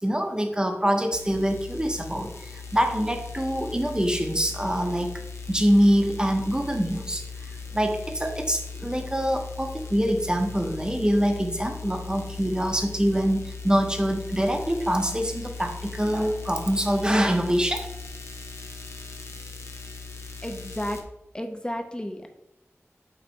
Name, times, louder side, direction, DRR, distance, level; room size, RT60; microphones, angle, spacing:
voice 1, 0.0-2.3 2.7-5.1 5.5-7.2 7.7-17.9, equal, 15° right, 4 dB, 1.0 m, -24 dB
sound 1, 1.1-21.0, left 4 dB, 65° left, 0.9 m, -39 dB
voice 2, 20.4-21.0 21.3-22.3, equal, 15° left, 5 dB, 0.9 m, -32 dB
6.9 x 3.3 x 4.6 m, 0.86 s
wide cardioid pair, 50°, 5 cm